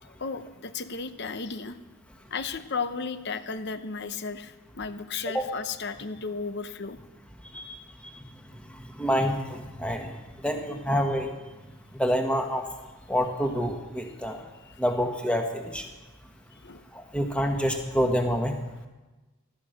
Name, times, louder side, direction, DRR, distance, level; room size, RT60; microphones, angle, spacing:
voice 1, 0.0-1.8 2.3-7.0 7.5-7.6 14.7-14.8 16.6-16.8, left 4 dB, 50° left, 11 dB, 0.8 m, -34 dB
voice 2, 8.7-10.1 10.4-11.3 11.9-12.7 13.1-14.4 14.8-15.8 16.9-18.6, equal, 5° left, 3 dB, 1.6 m, -27 dB
14.0 x 13.5 x 6.5 m, 1.1 s
head